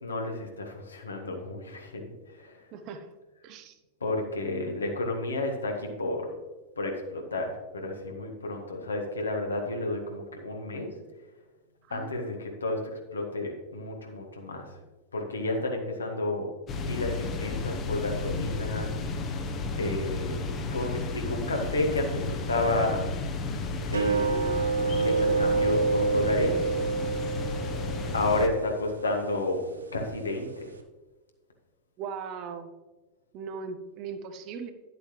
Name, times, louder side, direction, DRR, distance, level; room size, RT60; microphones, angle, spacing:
voice 1, 0.0-2.7 4.0-6.3 6.8-10.9 11.9-12.8 13.1-14.7 15.1-16.5 16.8-19.3 19.8-20.4 20.7-23.0 23.9-26.7 28.1-29.6 29.9-30.7, left 2 dB, 75° left, 2 dB, 1.6 m, -31 dB
voice 2, 2.7-3.1 3.4-3.8 11.9-12.4 32.0-32.7 33.3-34.7, right 6 dB, 40° right, 8 dB, 0.9 m, -39 dB
sound 1, 16.7-28.5, left 3 dB, 30° left, 1.0 m, -33 dB
sound 2, 23.9-30.8, right 5 dB, 75° right, 0.9 m, -29 dB
11.0 x 7.7 x 3.3 m, 1.2 s
figure-of-eight pair, 90°, 0 cm